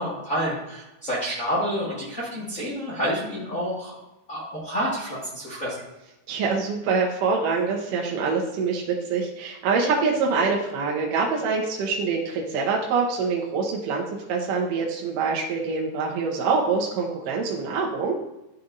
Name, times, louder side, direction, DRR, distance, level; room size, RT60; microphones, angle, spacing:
voice 1, 0.0-3.9 4.3-5.7, equal, 45° left, -8 dB, 1.0 m, -28 dB
voice 2, 6.3-18.2, right 4 dB, 70° right, -3 dB, 2.2 m, -25 dB
12.0 x 4.2 x 2.6 m, 0.96 s
omnidirectional pair, 4.5 m